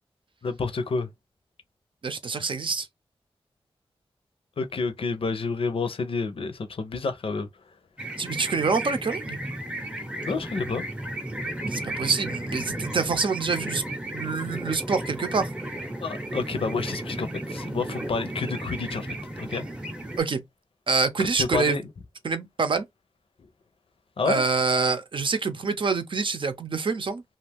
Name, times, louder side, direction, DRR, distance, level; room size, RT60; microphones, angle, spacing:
voice 1, 0.4-1.1 4.6-7.5 10.2-10.8 16.0-19.6 21.3-21.8 24.2-24.4, left 4 dB, 70° left, 0.6 m, -29 dB
voice 2, 2.0-2.9 8.2-9.4 11.7-13.8 14.1-15.5 20.2-20.4 20.9-21.9 22.2-22.8 24.2-27.2, right 4 dB, 60° right, 0.6 m, -26 dB
sound 1, 8.0-20.2, right 1 dB, 10° right, 0.6 m, -34 dB
2.5 x 2.3 x 3.4 m
wide cardioid pair, 95°, 10 cm